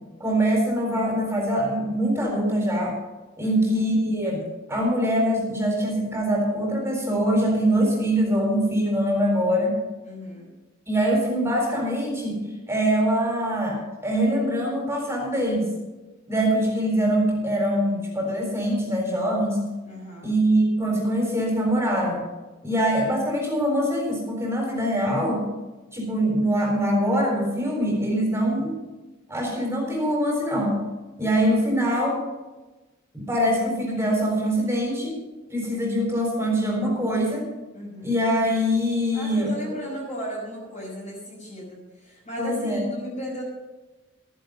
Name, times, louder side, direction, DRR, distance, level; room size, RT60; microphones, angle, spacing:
voice 1, 0.2-3.0 3.4-4.4 4.7-9.7 10.9-12.4 12.7-15.7 16.3-19.6 20.2-22.2 22.6-25.5 25.9-28.8 29.3-30.8 31.2-32.2 33.1-35.2 35.5-37.5 38.0-39.5 42.4-42.8, equal, 15° right, -1 dB, 4.1 m, -23 dB
voice 2, 3.4-3.8 10.0-10.5 19.8-20.3 37.7-38.2 39.1-43.4, equal, 35° left, -6 dB, 5.5 m, -36 dB
14.0 x 11.0 x 5.3 m, 1.2 s
head